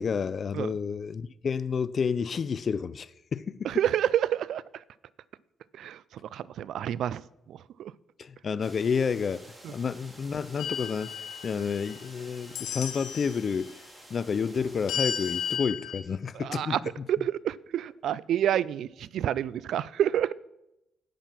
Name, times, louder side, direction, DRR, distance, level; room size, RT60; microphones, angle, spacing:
voice 1, 0.0-3.7 8.2-11.2 11.4-13.8 14.1-17.0, left 6 dB, 45° left, 0.5 m, -30 dB
voice 2, 3.6-4.6 5.8-6.0 6.3-7.2 7.5-7.9 16.4-16.8 17.1-20.3, right 10 dB, 75° right, 0.4 m, -28 dB
sound 1, 8.6-15.6, right 1 dB, 15° right, 2.3 m, -50 dB
sound 2, 10.6-12.1 12.5-13.4 14.9-16.0, left 8 dB, 90° left, 1.1 m, -34 dB
10.0 x 9.2 x 5.9 m
cardioid pair, 90°, 0 cm